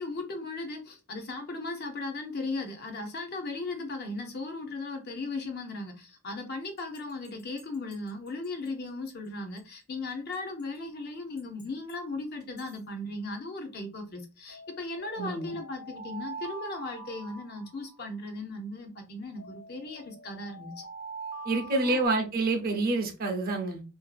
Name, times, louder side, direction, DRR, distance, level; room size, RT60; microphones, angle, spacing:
voice 1, 0.0-20.7 21.8-22.0, left 2 dB, 45° left, 0.6 m, -37 dB
sound 1, 6.8-8.7 9.1-9.2 9.6-9.7 10.3-10.8 11.4-11.9 12.4-12.8 14.5-18.2 19.4-22.1, right 3 dB, 75° left, 1.1 m, -44 dB
voice 2, 15.2-15.6 21.4-23.8, right 3 dB, 45° right, 0.6 m, -28 dB
2.6 x 2.3 x 2.3 m
head